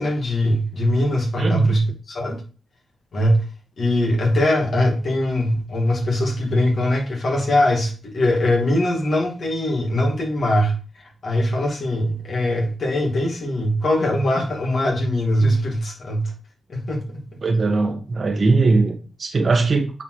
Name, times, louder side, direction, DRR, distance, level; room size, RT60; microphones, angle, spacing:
voice 1, 0.0-2.4 3.1-3.4 3.8-10.8 11.2-16.3 16.7-17.2, left 1 dB, 65° left, 2.4 m, -21 dB
voice 2, 1.4-1.7 17.4-19.9, right 3 dB, 55° right, 1.5 m, -20 dB
8.9 x 4.3 x 3.2 m
cardioid pair, 55°, 0 cm